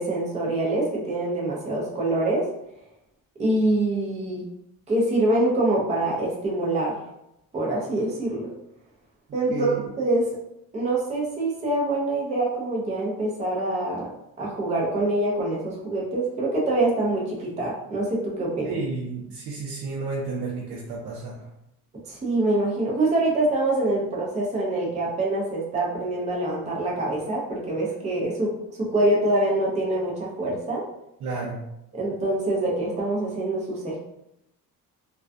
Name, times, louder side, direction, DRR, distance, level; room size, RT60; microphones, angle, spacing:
voice 1, 0.0-2.5 3.4-4.4 4.9-7.0 7.5-8.5 9.3-10.4 10.7-14.1 14.4-18.8 22.1-28.5 28.8-30.8 31.9-34.0, right 2 dB, 20° right, -3 dB, 0.5 m, -25 dB
voice 2, 9.5-9.8 18.6-21.5 31.2-31.6, right 3 dB, 70° right, -5 dB, 0.6 m, -31 dB
2.3 x 2.2 x 2.4 m, 0.82 s
cardioid pair, 125°, 37 cm